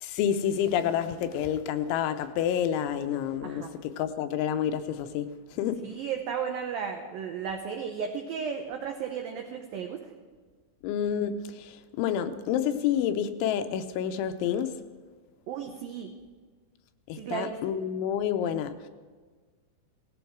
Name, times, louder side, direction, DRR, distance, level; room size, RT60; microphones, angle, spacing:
voice 1, 0.0-5.8 10.8-14.7 17.1-18.7, left 9 dB, 80° left, 9 dB, 3.1 m, -29 dB
voice 2, 5.8-10.0 15.5-16.1 17.2-17.6, right 7 dB, 85° right, 4 dB, 2.0 m, -34 dB
18.5 x 15.0 x 4.7 m, 1.5 s
omnidirectional pair, 5.5 m